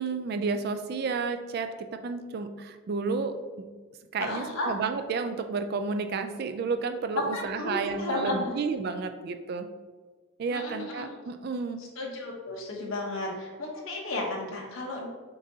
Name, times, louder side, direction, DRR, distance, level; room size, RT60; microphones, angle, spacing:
voice 1, 0.0-3.7 4.1-9.7 10.4-11.8, right 4 dB, 50° right, 8 dB, 0.3 m, -31 dB
voice 2, 4.2-4.7 7.3-8.5 10.5-11.1 12.0-15.1, left 2 dB, 75° left, -1 dB, 1.0 m, -33 dB
6.6 x 2.6 x 2.7 m, 1.4 s
head